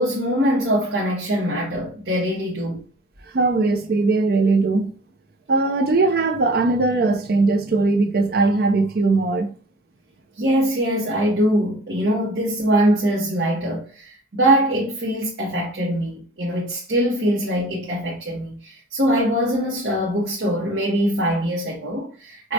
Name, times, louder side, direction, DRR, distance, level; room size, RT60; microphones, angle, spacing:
voice 1, 0.0-2.8 10.4-22.5, equal, 70° right, 0.9 m, -22 dB
voice 2, 3.3-4.9 5.5-9.5, right 3 dB, 55° right, 0.5 m, -19 dB
4.7 x 2.1 x 2.7 m
head